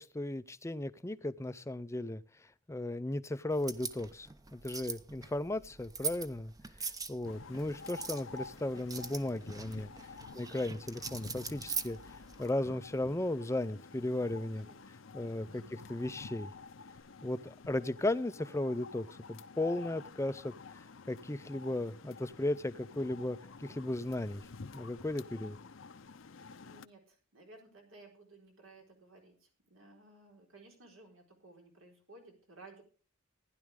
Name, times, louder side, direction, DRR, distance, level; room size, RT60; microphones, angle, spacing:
voice 1, 0.0-2.2 2.7-6.5 7.1-9.9 10.4-12.0 12.4-14.7 15.1-15.6 15.9-16.5 17.2-24.4 24.7-25.6, left 1 dB, 15° left, 0.5 m, -36 dB
sound 1, 3.5-12.5, right 5 dB, 20° right, 0.7 m, -43 dB
sound 2, 7.2-26.8, left 4 dB, 65° left, 0.7 m, -50 dB
voice 2, 26.6-32.8, right 2 dB, 80° right, 4.4 m, -57 dB
15.5 x 10.5 x 3.6 m
head